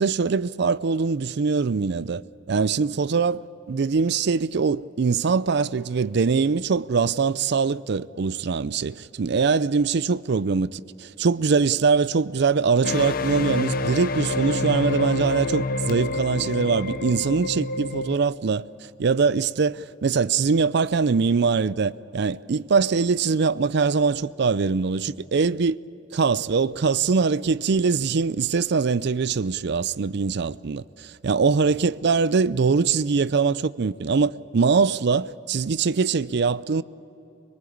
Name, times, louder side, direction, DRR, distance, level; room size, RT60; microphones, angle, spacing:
voice 1, 0.0-2.2 2.5-18.6 19.0-25.8 26.1-36.8, right 5 dB, 65° right, 0.5 m, -22 dB
sound 1, 12.8-18.2, left 3 dB, 50° left, 0.8 m, -27 dB
25.5 x 19.5 x 8.6 m
head